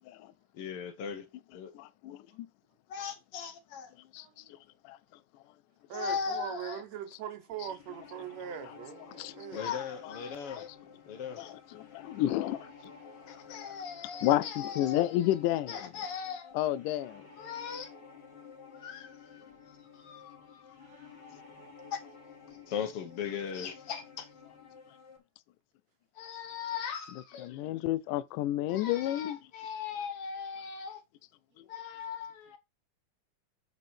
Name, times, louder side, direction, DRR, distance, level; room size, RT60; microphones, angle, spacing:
voice 1, 0.5-1.2 1.5-1.7 2.9-3.9 5.9-6.8 9.5-10.7 11.1-11.6 13.3-15.1 15.7-16.5 17.4-17.9 18.8-20.7 21.9-22.0 22.7-24.3 26.2-27.5 28.7-31.0 31.7-32.6, left 7 dB, 65° left, 1.5 m, -39 dB
voice 2, 1.7-2.5 4.1-4.4 4.8-5.0 9.2-9.3 10.0-10.1 10.5-10.7 11.4-12.7 13.5-13.6 14.2-15.9 16.5-17.2 27.4-29.4 31.6-31.7, left 13 dB, 80° left, 2.1 m, -31 dB
voice 3, 4.2-4.5 5.9-9.7 20.8-21.1 22.6-22.7, right 9 dB, 65° right, 2.1 m, -42 dB
sound 1, 7.5-25.2, left 5 dB, 40° left, 2.2 m, -53 dB
8.1 x 5.4 x 4.3 m
omnidirectional pair, 3.6 m